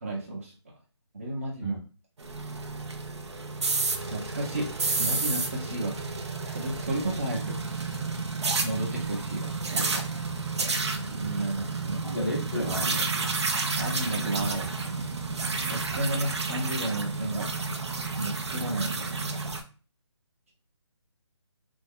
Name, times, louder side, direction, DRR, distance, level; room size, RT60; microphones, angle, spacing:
voice 1, 0.0-0.5 1.1-1.8 4.1-6.0 6.4-7.9 8.6-10.3 11.0-12.0 13.8-14.6 14.9-15.1 15.7-17.5 18.2-19.2, right 1 dB, 30° right, -2 dB, 0.8 m, -33 dB
sound 1, 2.2-19.6, right 4 dB, 70° right, 0.6 m, -31 dB
voice 2, 12.0-13.4, equal, 5° left, -16 dB, 0.5 m, -32 dB
2.7 x 2.1 x 3.7 m, 0.37 s
hypercardioid pair, 170°, 15 cm